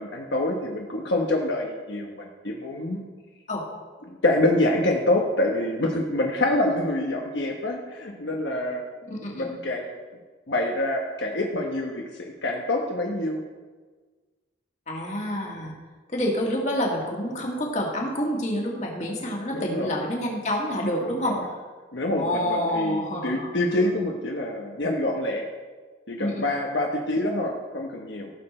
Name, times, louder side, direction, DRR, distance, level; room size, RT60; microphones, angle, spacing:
voice 1, 0.0-3.0 4.1-8.8 9.4-10.0 10.5-13.4 19.5-20.1 21.0-21.5 21.9-25.5 26.1-28.3, left 1 dB, 70° left, 0 dB, 1.1 m, -26 dB
voice 2, 9.1-9.5 14.9-15.7 16.1-21.3 22.2-23.5 26.2-26.5, equal, 40° left, -1 dB, 2.1 m, -28 dB
16.5 x 6.8 x 4.4 m, 1.4 s
head